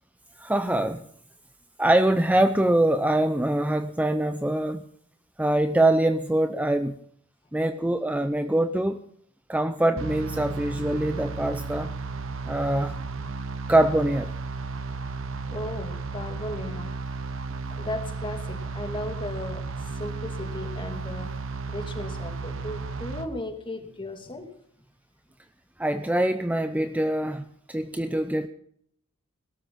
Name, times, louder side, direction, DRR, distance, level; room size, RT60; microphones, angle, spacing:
voice 1, 0.4-1.0 1.8-4.9 5.4-6.9 7.5-9.0 9.5-11.9 12.5-13.0 13.7-14.3 25.8-28.5, right 1 dB, 5° right, 9 dB, 0.6 m, -24 dB
sound 1, 10.0-23.3, right 3 dB, 65° right, 1.2 m, -34 dB
voice 2, 15.5-16.9 17.7-21.3 21.7-24.5, left 1 dB, 25° left, 5 dB, 2.4 m, -36 dB
18.0 x 13.0 x 5.7 m, 0.64 s
head